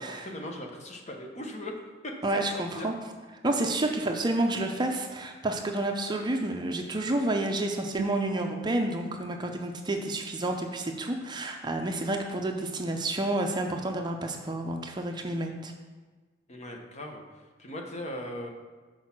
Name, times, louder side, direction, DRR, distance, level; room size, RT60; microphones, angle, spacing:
voice 1, 0.0-1.7 2.0-2.9 16.5-18.5, left 1 dB, 35° left, 2 dB, 1.0 m, -39 dB
voice 2, 2.2-2.9 3.4-15.7, right 1 dB, 25° right, 3 dB, 0.5 m, -30 dB
Guitar, 8.0-11.0, right 6 dB, 75° right, 0.4 m, -40 dB
6.2 x 4.7 x 5.9 m, 1.3 s
head